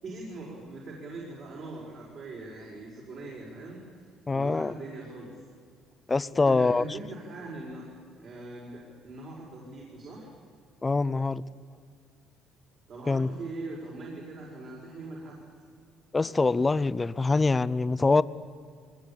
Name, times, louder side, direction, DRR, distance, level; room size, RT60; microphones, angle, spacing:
voice 1, 0.0-3.8 4.3-5.3 6.3-7.8 8.2-10.3 12.9-15.4, right 2 dB, 55° right, -3 dB, 5.4 m, -41 dB
voice 2, 4.3-4.7 6.1-6.8 10.8-11.4 13.1-13.3 16.1-18.2, left 3 dB, 20° left, 16 dB, 0.5 m, -24 dB
23.0 x 20.0 x 8.8 m, 2.1 s
cardioid pair, 120°, 0 cm